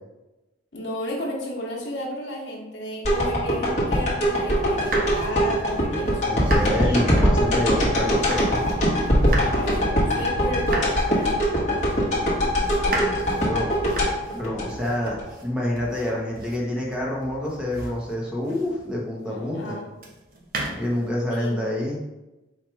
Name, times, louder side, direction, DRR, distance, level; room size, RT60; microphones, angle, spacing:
voice 1, 0.7-7.0 7.3-7.6 9.5-11.4 19.3-19.9 21.3-21.8, equal, 65° left, -1 dB, 1.1 m, -33 dB
sound 1, 3.0-15.2 15.7-15.8, equal, 40° left, 1.2 m, -22 dB
sound 2, 4.6-8.8 9.1-19.0 20.0-21.1, right 2 dB, 50° right, 0.7 m, -35 dB
voice 2, 6.2-8.7 12.2-13.7 14.3-15.2 15.4-19.8 20.7-22.0, left 1 dB, 5° right, -3 dB, 0.9 m, -28 dB
4.5 x 2.5 x 4.5 m, 1.0 s
head